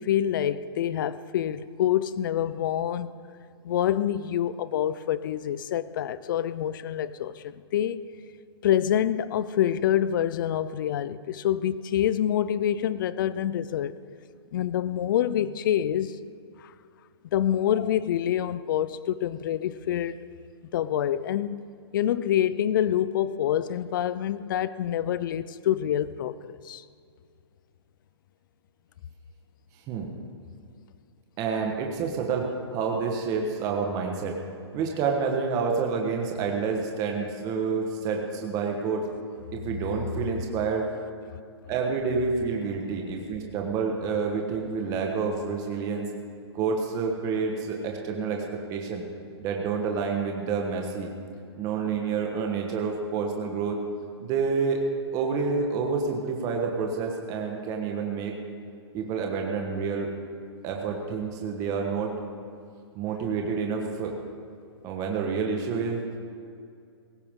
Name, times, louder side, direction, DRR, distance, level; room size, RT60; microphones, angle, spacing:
voice 1, 0.0-3.1 3.6-8.0 8.6-13.9 14.5-16.2 16.6-16.7 17.3-20.2 20.7-21.6 21.9-26.8, left 10 dB, 50° left, 0.6 m, -26 dB
voice 2, 31.4-34.4 34.7-39.1 39.5-40.9 41.7-46.1 46.5-49.0 49.4-51.1 51.6-53.8 54.2-54.8 55.1-58.4 58.9-60.1 60.6-62.2 62.9-64.1 64.8-66.0, right 5 dB, 25° right, 1.4 m, -28 dB
17.5 x 15.0 x 3.7 m
hypercardioid pair, 150°, 14 cm